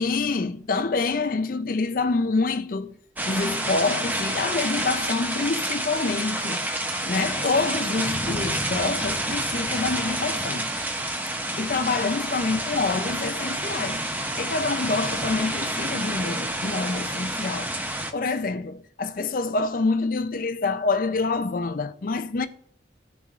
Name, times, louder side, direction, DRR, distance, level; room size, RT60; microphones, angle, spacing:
voice 1, 0.0-2.9 3.2-6.7 7.1-10.7 11.6-14.1 14.4-17.7 18.1-22.5, left 3 dB, 45° left, 0.5 m, -26 dB
sound 1, 3.2-18.1, right 1 dB, 10° right, 0.6 m, -29 dB
15.5 x 6.9 x 2.4 m
head